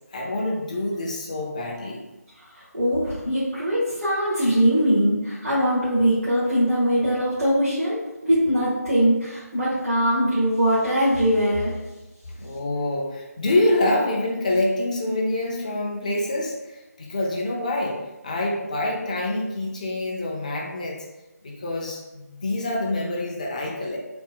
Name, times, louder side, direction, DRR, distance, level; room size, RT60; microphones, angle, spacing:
voice 1, 0.1-2.0 12.3-21.1 21.4-24.0, left 1 dB, 25° left, -1 dB, 0.5 m, -26 dB
voice 2, 2.5-8.0 8.2-11.7, equal, 60° right, -10 dB, 1.3 m, -21 dB
3.4 x 2.2 x 3.6 m, 1.1 s
figure-of-eight pair, 160°, 9 cm